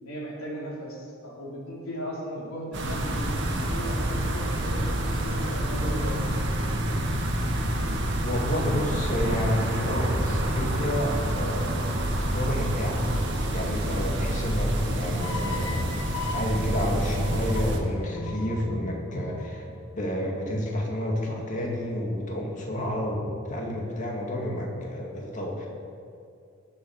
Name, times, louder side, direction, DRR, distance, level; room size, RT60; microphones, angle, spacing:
voice 1, 0.0-6.2, equal, 85° left, -5 dB, 3.6 m, -36 dB
sound 1, 2.7-17.8, right 1 dB, 60° right, 1.4 m, -27 dB
voice 2, 8.2-11.9 12.3-13.0 13.5-15.9 16.3-19.6 19.9-25.7, equal, 35° left, -1 dB, 2.0 m, -30 dB
sound 2, 15.2-20.4, left 2 dB, 65° left, 1.3 m, -36 dB
18.5 x 7.4 x 4.7 m, 2.4 s
head